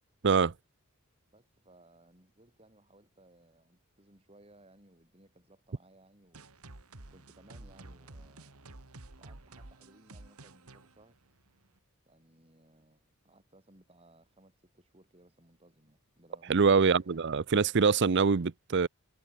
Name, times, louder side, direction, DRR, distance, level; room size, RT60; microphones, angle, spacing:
voice 1, 1.3-6.5 7.1-8.7 9.2-11.2 12.1-17.2, right 1 dB, 25° right, 7.4 m, -61 dB
sound 1, 6.3-11.8, right 2 dB, 80° right, 2.3 m, -51 dB
voice 2, 16.5-18.9, right 5 dB, 50° right, 0.6 m, -24 dB
head